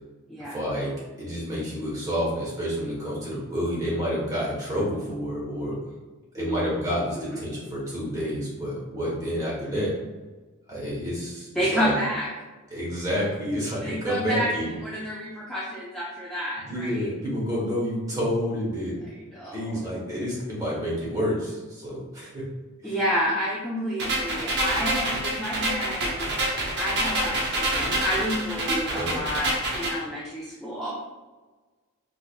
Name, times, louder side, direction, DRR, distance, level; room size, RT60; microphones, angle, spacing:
voice 1, 0.5-0.9 1.2-5.7 6.3-9.9 10.7-11.9 12.7-14.7 16.6-19.0 19.5-22.4 22.8-23.0 28.9-29.2, equal, 15° right, -6 dB, 1.1 m, -29 dB
voice 2, 6.4-6.9 7.1-7.4 11.6-12.3 13.8-14.5 14.8-17.1 19.3-19.8 22.8-26.1 26.8-30.9, equal, ahead, -8 dB, 0.4 m, -29 dB
sound 1, 24.0-30.0, right 1 dB, 50° right, 0.8 m, -27 dB
4.7 x 2.4 x 2.3 m, 1.3 s
head